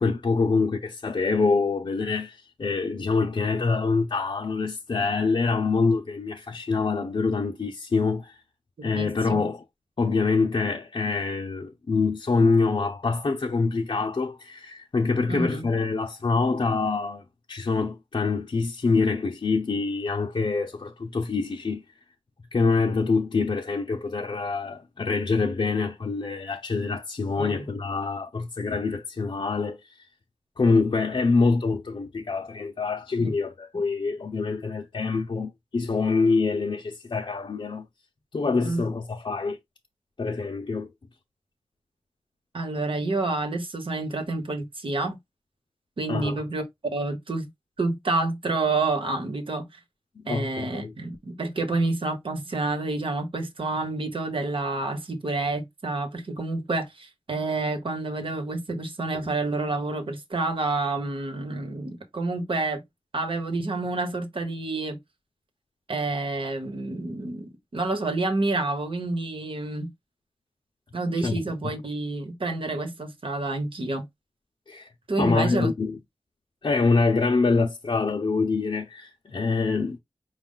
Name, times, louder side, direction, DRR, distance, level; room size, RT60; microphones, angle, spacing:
voice 1, 0.0-8.4 8.8-9.6 10.0-17.2 17.5-21.8 22.5-29.8 30.6-37.9 38.3-39.6 40.2-40.9 46.1-46.3 50.3-50.9 71.2-71.4 74.7-74.9 75.2-76.0 76.6-80.0, left 4 dB, 50° left, 0.7 m, -25 dB
voice 2, 8.8-9.4 15.3-15.7 27.4-27.6 33.2-33.3 38.6-38.9 42.5-45.2 46.0-47.5 47.8-49.8 50.3-62.8 63.1-65.0 65.9-69.9 70.9-74.1 75.1-75.7, right 2 dB, 60° right, 1.2 m, -29 dB
5.2 x 2.4 x 3.8 m
wide cardioid pair, 100°, 10 cm